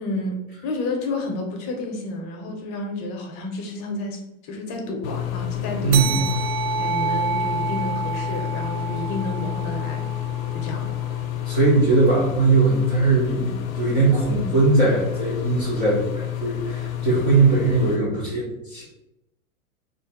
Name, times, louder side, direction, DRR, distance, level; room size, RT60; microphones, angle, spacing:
voice 1, 0.0-6.3 6.8-10.1 10.5-10.9, left 2 dB, 30° left, 2 dB, 0.7 m, -31 dB
sound 1, 5.0-18.0, left 12 dB, 70° left, 0.5 m, -29 dB
voice 2, 5.8-6.2 11.5-18.8, right 3 dB, 15° right, -8 dB, 0.3 m, -20 dB
sound 2, 5.9-10.8, right 6 dB, 80° right, 0.7 m, -29 dB
2.5 x 2.3 x 4.1 m, 0.87 s
figure-of-eight pair, 100°, 43 cm